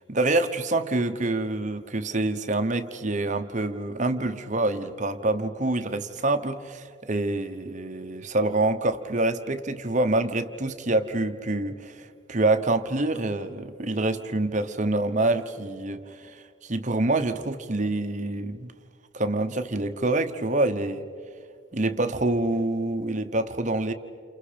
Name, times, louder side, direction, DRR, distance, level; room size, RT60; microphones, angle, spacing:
voice 1, 0.1-18.7 19.1-21.1 21.7-23.9, right 2 dB, 35° right, 8 dB, 1.0 m, -26 dB
29.5 x 28.5 x 5.1 m, 2.2 s
head